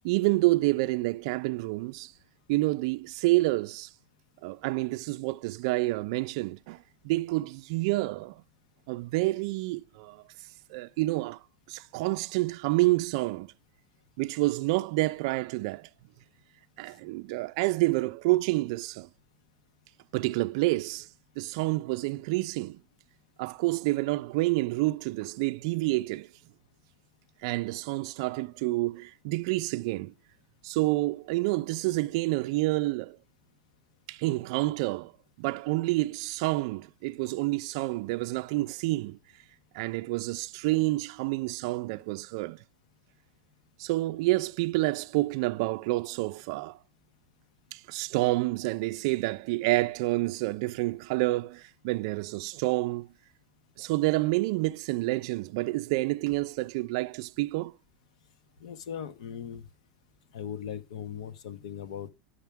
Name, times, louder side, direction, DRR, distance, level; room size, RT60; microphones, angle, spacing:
voice 1, 0.0-2.1 2.5-3.9 4.4-8.4 8.9-10.2 10.7-11.4 11.7-13.5 14.2-15.9 16.8-19.1 20.1-21.1 21.4-22.8 23.4-26.3 27.4-30.1 30.6-33.2 34.1-35.1 35.4-39.2 39.7-42.6 43.8-46.8 47.7-53.1 53.8-57.7, right 20 dB, 50° right, 0.4 m, -28 dB
voice 2, 58.6-59.7 60.3-62.1, left 9 dB, 85° left, 1.1 m, -39 dB
10.5 x 6.4 x 3.5 m
supercardioid pair, 175°, 4 cm